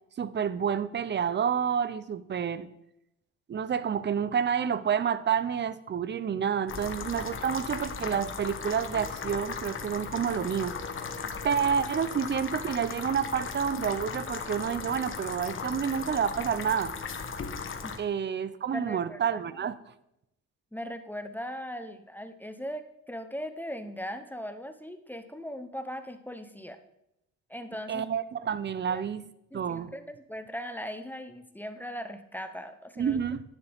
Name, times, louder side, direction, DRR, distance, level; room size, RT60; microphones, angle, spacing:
voice 1, 0.2-2.7 3.5-10.8 11.2-16.9 18.0-19.7 27.9-29.3 29.5-29.9 33.0-33.4, right 7 dB, 35° right, 16 dB, 0.6 m, -29 dB
sound 1, 6.7-18.0, left 5 dB, 40° left, 1.3 m, -37 dB
voice 2, 18.7-19.6 20.7-26.8 27.5-28.0 28.9-29.0 29.5-33.2, equal, 5° left, 8 dB, 0.8 m, -39 dB
10.5 x 9.5 x 3.5 m, 0.83 s
cardioid pair, 90°, 30 cm